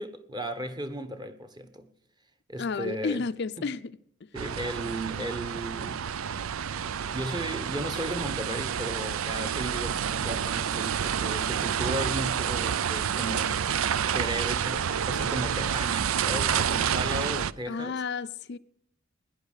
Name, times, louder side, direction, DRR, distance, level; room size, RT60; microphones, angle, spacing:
voice 1, 0.0-1.9 2.5-3.2 4.3-6.1 7.1-13.6 14.1-18.0, right 1 dB, 20° right, 1.1 m, -35 dB
voice 2, 2.6-4.3 17.7-18.6, left 4 dB, 55° left, 0.5 m, -32 dB
sound 1, 4.3-17.5, right 8 dB, 85° right, 0.5 m, -29 dB
17.5 x 10.5 x 6.5 m
head